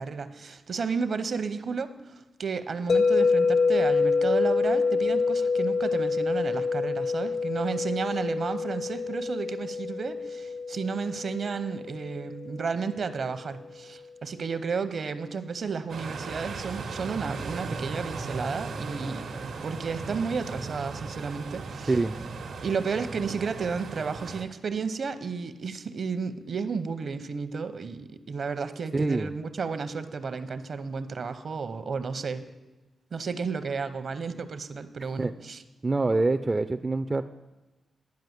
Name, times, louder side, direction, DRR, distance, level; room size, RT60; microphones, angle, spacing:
voice 1, 0.0-19.3 19.6-22.0 22.6-32.4 33.1-35.6, right 5 dB, 55° right, 11 dB, 0.7 m, -32 dB
sound 1, 2.9-13.0, left 4 dB, 50° left, 0.4 m, -26 dB
sound 2, 15.9-24.4, right 4 dB, 85° right, 1.1 m, -37 dB
voice 2, 28.9-29.3 35.2-35.3 35.8-37.2, right 3 dB, 25° right, 8 dB, 0.3 m, -25 dB
10.5 x 5.5 x 8.0 m, 1.1 s
cardioid pair, 100°, 0 cm